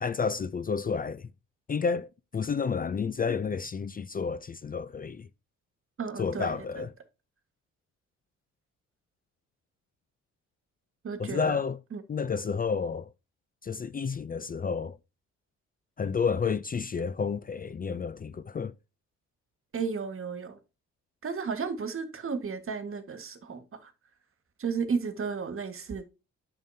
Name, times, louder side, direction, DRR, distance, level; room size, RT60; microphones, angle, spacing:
voice 1, 0.0-1.3 1.7-2.1 2.3-5.3 6.2-6.9 11.2-11.8 12.1-13.1 13.6-15.0 16.0-18.7, left 5 dB, 30° left, 0.5 m, -30 dB
voice 2, 6.0-6.8 11.0-11.6 11.9-12.0 19.7-20.6 21.2-23.9 24.6-26.1, right 5 dB, 45° right, 1.7 m, -33 dB
9.1 x 6.8 x 2.8 m
cardioid pair, 90°, 30 cm